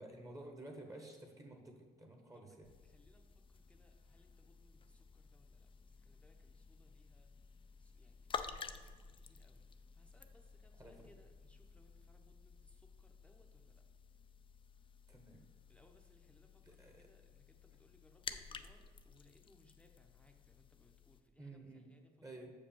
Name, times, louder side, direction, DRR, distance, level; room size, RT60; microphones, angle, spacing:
voice 1, 0.0-2.7 10.8-11.0 15.1-15.5 16.6-17.1 21.4-21.9 22.2-22.5, right 1 dB, 20° right, 3 dB, 1.2 m, -52 dB
sound 1, 2.6-21.2, left 6 dB, 30° left, 0.4 m, -52 dB
voice 2, 2.8-9.6 9.9-13.8 15.7-22.4, left 1 dB, 5° left, 4 dB, 0.8 m, -69 dB
6.6 x 5.2 x 7.0 m, 1.5 s
cardioid pair, 110°, 17 cm